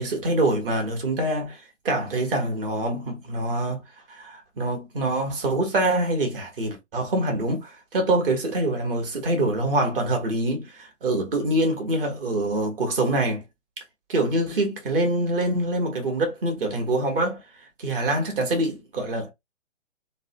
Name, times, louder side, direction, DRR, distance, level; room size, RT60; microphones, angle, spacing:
voice 1, 0.0-3.8 4.1-13.4 14.1-17.4 17.8-19.3, right 1 dB, 45° right, 1.4 m, -25 dB
3.0 x 2.2 x 2.9 m
hypercardioid pair, 145°, 37 cm